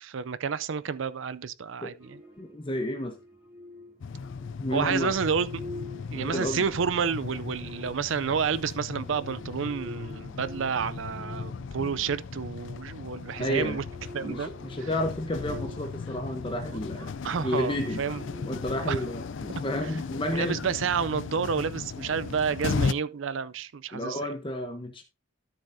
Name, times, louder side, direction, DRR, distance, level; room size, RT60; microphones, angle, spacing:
voice 1, 0.0-2.2 4.7-5.6 6.1-13.8 14.1-14.5 14.8-14.9 17.2-18.2 18.9-19.0 20.3-24.2, right 6 dB, 65° right, 0.5 m, -30 dB
sound 1, 2.0-20.9, left 1 dB, 10° right, 2.7 m, -48 dB
voice 2, 2.4-3.2 4.6-5.1 6.1-6.6 13.4-13.8 14.2-17.1 17.4-20.6 23.9-25.0, left 1 dB, 25° left, 0.9 m, -31 dB
sound 2, 4.0-22.9, left 5 dB, 65° left, 0.4 m, -37 dB
12.5 x 7.1 x 2.7 m
head